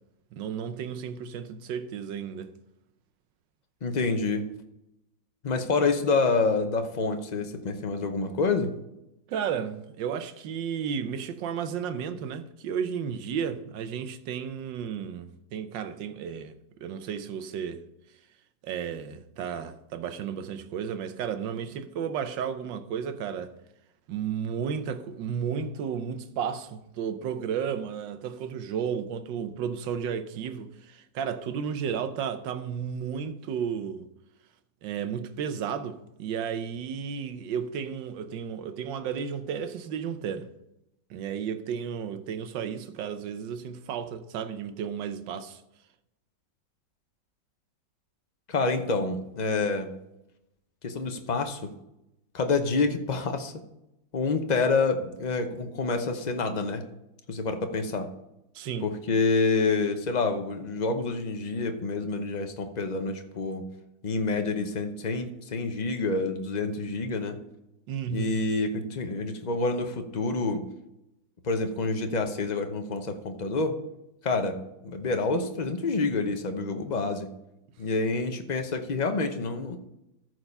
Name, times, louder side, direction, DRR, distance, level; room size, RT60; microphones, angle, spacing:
voice 1, 0.3-2.5 9.3-16.6 16.8-17.8 18.6-23.5 24.1-34.1 34.8-40.5 41.1-45.6 58.5-58.9 67.9-68.3, right 7 dB, 90° right, 1.5 m, -33 dB
voice 2, 3.8-4.5 5.4-8.7 48.5-49.9 50.8-51.7 52.3-53.5 54.1-56.8 57.3-58.1 58.8-63.7 64.0-67.4 68.1-70.6 71.4-73.8 74.2-77.3 77.8-79.8, left 3 dB, 40° left, 0.6 m, -27 dB
14.0 x 4.8 x 5.4 m
omnidirectional pair, 1.9 m